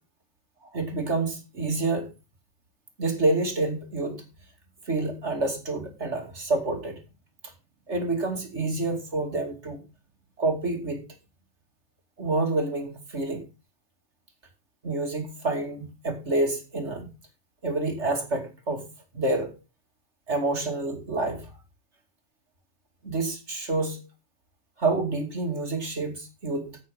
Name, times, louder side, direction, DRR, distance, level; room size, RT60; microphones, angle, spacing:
voice 1, 0.7-2.1 3.0-4.2 4.9-7.0 7.9-9.8 10.4-11.0 12.2-13.5 14.8-17.1 17.6-18.9 19.1-19.5 20.3-21.5 23.0-24.0 24.8-26.8, right 2 dB, 40° right, 2.8 m, -28 dB
15.5 x 6.8 x 3.8 m
omnidirectional pair, 1.8 m